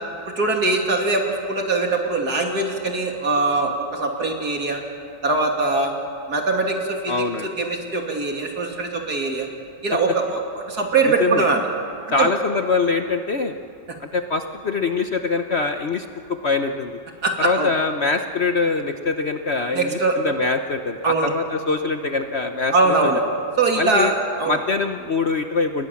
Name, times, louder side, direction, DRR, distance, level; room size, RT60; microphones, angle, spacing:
voice 1, 0.4-4.8 5.2-5.9 6.3-7.2 7.6-9.5 9.8-11.6 12.2-12.3 17.2-17.7 19.7-20.1 21.0-21.3 22.7-23.2 23.6-24.1 24.4-24.6, right 3 dB, 60° right, 2 dB, 3.2 m, -22 dB
voice 2, 7.1-7.5 11.2-11.5 12.1-13.5 14.0-16.9 17.4-23.1 23.8-24.1 24.5-25.9, left 4 dB, 45° left, 6 dB, 1.0 m, -23 dB
30.0 x 21.0 x 7.2 m, 2.7 s
omnidirectional pair, 1.9 m